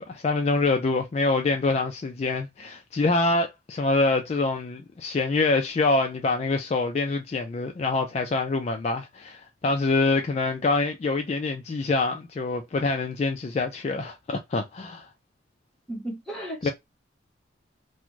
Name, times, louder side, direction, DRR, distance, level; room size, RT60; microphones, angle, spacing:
voice 1, 0.0-15.1 16.6-16.7, left 3 dB, 35° left, 0.3 m, -25 dB
voice 2, 15.9-16.7, right 1 dB, ahead, 1.0 m, -34 dB
2.5 x 2.3 x 3.0 m
head